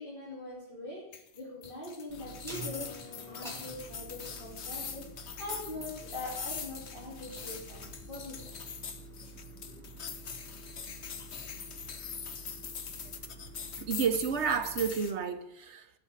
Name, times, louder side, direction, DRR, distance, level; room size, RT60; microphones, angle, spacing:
voice 1, 0.0-8.5 9.1-9.3 9.6-9.8, left 2 dB, 50° left, 3.3 m, -43 dB
sound 1, 1.1-15.1, left 6 dB, 75° left, 1.3 m, -43 dB
sound 2, 2.1-14.9, right 2 dB, ahead, 3.5 m, -48 dB
voice 2, 13.8-15.9, right 6 dB, 85° right, 1.3 m, -31 dB
12.0 x 7.1 x 8.0 m
omnidirectional pair, 1.1 m